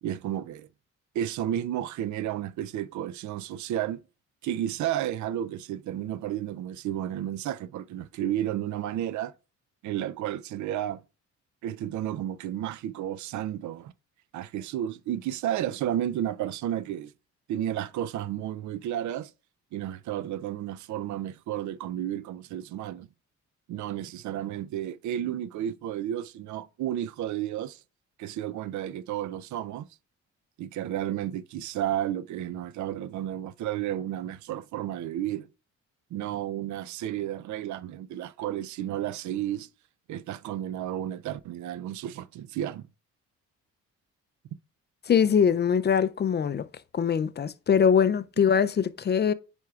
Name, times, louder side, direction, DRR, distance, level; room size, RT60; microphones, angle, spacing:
voice 1, 0.0-0.7 1.1-4.0 4.4-9.3 9.8-11.0 11.6-13.9 14.3-17.1 17.5-19.3 19.7-23.1 23.7-27.8 28.2-29.9 30.6-35.5 36.1-39.7 40.1-42.8, right 11 dB, 70° right, 0.5 m, -32 dB
voice 2, 45.1-46.6 46.9-49.3, left 7 dB, 35° left, 0.5 m, -22 dB
9.4 x 4.5 x 2.4 m
cardioid pair, 90°, 30 cm